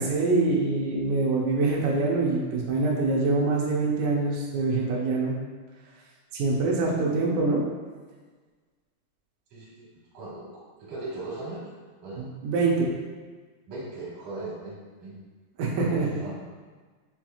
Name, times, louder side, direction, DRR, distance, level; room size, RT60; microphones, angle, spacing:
voice 1, 0.0-5.4 6.3-7.6 12.2-12.9 15.6-16.1, right 3 dB, 85° right, -4 dB, 1.8 m, -25 dB
voice 2, 9.5-9.9 10.1-10.5 10.8-11.7 12.0-12.3 13.7-15.2 15.8-16.3, right 2 dB, 65° right, -8 dB, 2.6 m, -38 dB
7.0 x 2.9 x 2.3 m, 1.4 s
omnidirectional pair, 4.3 m